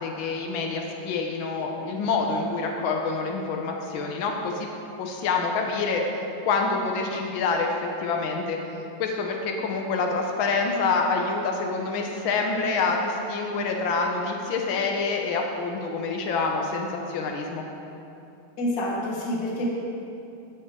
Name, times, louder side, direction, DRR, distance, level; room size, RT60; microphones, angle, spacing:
voice 1, 0.0-4.7 5.0-6.0 6.5-7.7 8.0-8.6 9.0-17.6, left 4 dB, 85° left, 2 dB, 1.1 m, -27 dB
voice 2, 18.6-19.6, left 1 dB, 45° left, -3 dB, 1.9 m, -27 dB
17.5 x 7.0 x 3.8 m, 2.8 s
omnidirectional pair, 3.4 m